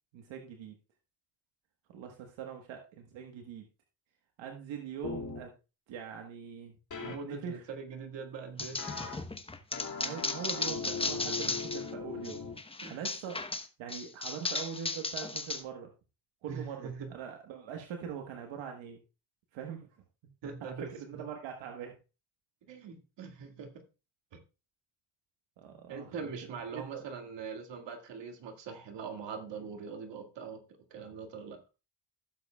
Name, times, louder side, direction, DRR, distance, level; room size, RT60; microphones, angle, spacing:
voice 1, 0.1-0.8 1.9-3.7 4.4-5.5 5.9-6.7 7.1-7.6 10.0-12.4 12.7-13.4 13.8-15.9 16.4-19.0 19.5-20.0 20.6-21.9 25.6-26.3 26.7-27.0, right 7 dB, 90° right, 3 dB, 1.4 m, -42 dB
sound 1, 5.0-5.4 6.9-7.2 8.8-9.1 9.7-12.5, left 5 dB, 40° left, 2.5 m, -39 dB
voice 2, 7.0-8.8 12.8-13.0 16.5-17.1 20.4-20.9 22.7-23.7 24.3-24.4 25.9-30.6 30.9-31.6, right 5 dB, 70° right, 4 dB, 2.1 m, -42 dB
sound 2, 8.6-11.9 12.2-15.6, left 3 dB, 10° left, 0.9 m, -35 dB
15.5 x 7.4 x 2.3 m, 0.30 s
cardioid pair, 95°, 45 cm